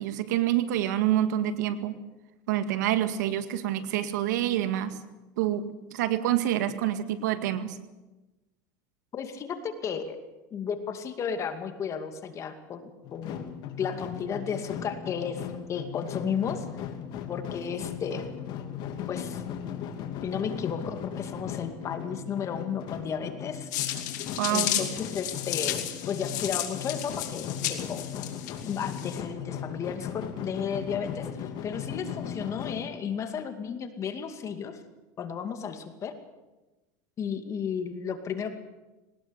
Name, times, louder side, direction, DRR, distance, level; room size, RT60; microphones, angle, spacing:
voice 1, 0.0-2.0 2.5-5.0 5.4-7.8 24.4-24.9, right 12 dB, 90° right, 10 dB, 2.0 m, -27 dB
voice 2, 9.1-10.2 10.5-13.4 13.8-15.4 15.7-16.6 17.3-18.2 19.1-19.4 20.2-23.7 24.5-28.1 28.6-31.3 31.6-34.8 35.2-36.1 37.2-38.5, left 7 dB, 35° left, 7 dB, 2.4 m, -33 dB
sound 1, 13.0-33.0, left 8 dB, 50° left, 2.6 m, -37 dB
sound 2, 23.7-29.2, left 12 dB, 85° left, 3.2 m, -33 dB
21.0 x 19.0 x 8.2 m, 1.1 s
supercardioid pair, 130°, 9 cm